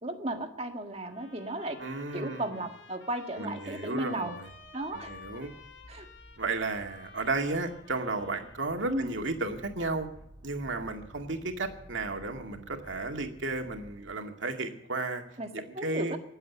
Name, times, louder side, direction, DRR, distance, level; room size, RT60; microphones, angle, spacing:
voice 1, 0.0-1.8 2.1-4.4 4.7-5.1 5.9-6.1 8.9-9.1 15.4-16.2, right 1 dB, 35° right, 5 dB, 1.7 m, -35 dB
sound 1, 1.0-8.8, left 5 dB, 80° left, 1.9 m, -52 dB
voice 2, 1.8-2.6 3.4-4.5 5.1-5.5 6.4-10.1 10.4-15.2 15.6-16.2, right 3 dB, 85° right, 4 dB, 2.2 m, -33 dB
sound 2, 4.4-14.0, equal, 15° right, 6.3 m, -53 dB
19.5 x 8.0 x 8.3 m, 0.80 s
head